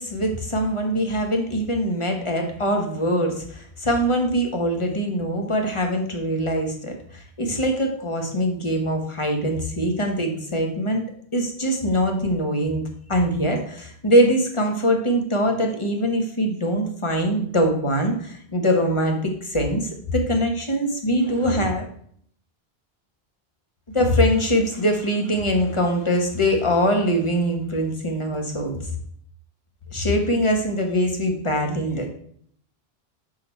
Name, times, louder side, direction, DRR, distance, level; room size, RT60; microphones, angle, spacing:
voice 1, 0.0-11.0 11.3-12.8 13.1-21.9 23.9-28.8 29.9-32.1, equal, 30° left, 3 dB, 1.3 m, -23 dB
6.4 x 5.8 x 4.4 m, 0.63 s
omnidirectional pair, 1.1 m